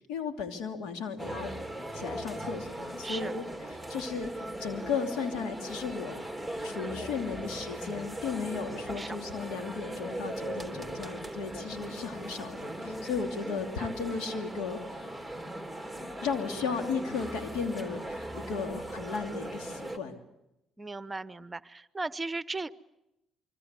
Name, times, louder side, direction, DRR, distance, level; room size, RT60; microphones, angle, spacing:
voice 1, 0.1-1.5 1.9-3.5 3.9-4.3 4.6-6.2 6.6-15.1 16.2-20.1, left 5 dB, 85° left, 6 dB, 2.8 m, -35 dB
sound 1, 1.2-20.0, right 1 dB, 5° left, 3.3 m, -39 dB
voice 2, 3.0-3.4 8.8-9.2 13.4-13.9 20.8-22.7, right 3 dB, 25° right, 15 dB, 0.9 m, -37 dB
25.0 x 24.5 x 8.2 m, 0.89 s
supercardioid pair, 70°, 0 cm